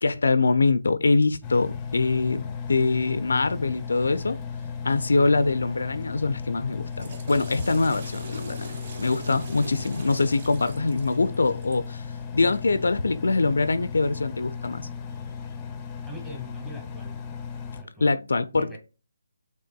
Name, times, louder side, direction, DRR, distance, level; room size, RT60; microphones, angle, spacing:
voice 1, 0.0-4.4 4.8-12.1 12.3-14.9 18.0-18.8, left 3 dB, 70° left, 0.4 m, -24 dB
Engine, 1.4-17.8, left 6 dB, 15° left, 0.6 m, -36 dB
Water / Toilet flush, 6.7-12.0, right 3 dB, 40° right, 1.0 m, -43 dB
voice 2, 16.1-17.2 17.8-18.1 18.5-18.8, equal, 5° right, 1.4 m, -41 dB
6.5 x 3.5 x 2.2 m
figure-of-eight pair, 150°, 0 cm